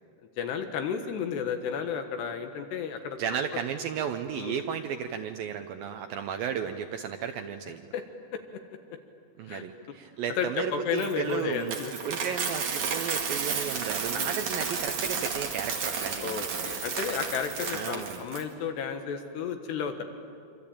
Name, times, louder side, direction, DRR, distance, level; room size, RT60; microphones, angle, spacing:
voice 1, 0.4-3.2 3.5-3.6 4.3-4.6 7.9-8.0 9.5-9.6 10.4-12.1 14.1-14.4 16.2-20.0, left 7 dB, 70° left, 6 dB, 3.3 m, -32 dB
voice 2, 3.2-7.9 9.4-11.8 12.1-16.7 17.7-18.2, right 8 dB, 85° right, 6 dB, 2.0 m, -34 dB
Coin (dropping), 11.0-18.4, right 6 dB, 45° right, 2.9 m, -32 dB
26.5 x 25.5 x 8.7 m, 2.3 s
omnidirectional pair, 5.2 m